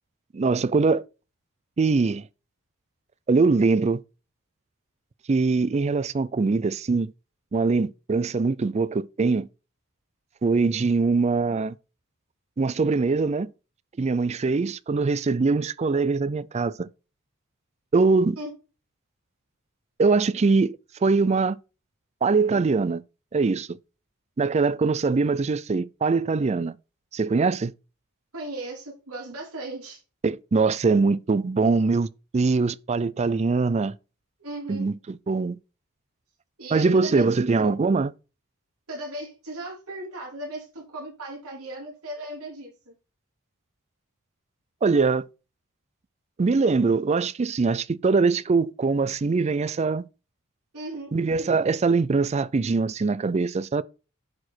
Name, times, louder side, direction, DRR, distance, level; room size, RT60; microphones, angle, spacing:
voice 1, 0.3-1.0 1.8-2.3 3.3-4.0 5.3-7.1 7.5-9.5 10.4-11.8 12.6-13.5 14.0-16.9 17.9-18.4 20.0-21.6 22.2-23.0 23.3-23.7 24.4-26.7 27.1-27.7 30.2-32.1 32.3-33.9 34.7-35.6 36.7-38.1 44.8-45.3 46.4-50.0 51.1-53.8, right 4 dB, 30° right, 0.3 m, -22 dB
voice 2, 28.3-30.0 34.4-34.8 36.6-37.2 37.6-37.7 38.9-42.9 50.7-51.1, right 1 dB, 85° right, 4.7 m, -36 dB
10.5 x 4.8 x 4.4 m
head